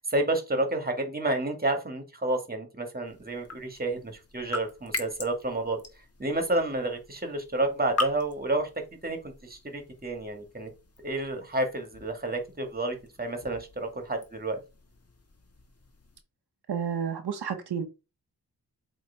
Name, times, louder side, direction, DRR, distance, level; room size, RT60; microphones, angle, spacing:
voice 1, 0.0-5.8 6.2-10.7 11.0-14.6, right 2 dB, 25° right, 1.9 m, -30 dB
sound 1, 3.0-16.2, left 2 dB, 40° left, 1.6 m, -41 dB
voice 2, 16.7-17.8, right 7 dB, 90° right, 1.2 m, -30 dB
7.9 x 3.3 x 4.5 m
wide cardioid pair, 95°, 39 cm